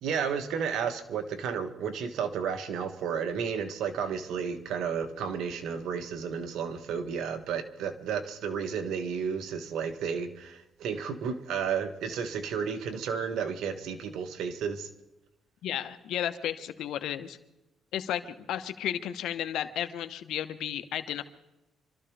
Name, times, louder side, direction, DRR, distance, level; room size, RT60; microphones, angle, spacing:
voice 1, 0.0-14.9, right 6 dB, 80° right, 7 dB, 1.4 m, -32 dB
voice 2, 15.6-17.4 17.9-21.2, left 11 dB, 80° left, 10 dB, 1.1 m, -33 dB
26.5 x 13.5 x 3.4 m, 0.92 s
cardioid pair, 90°, 0 cm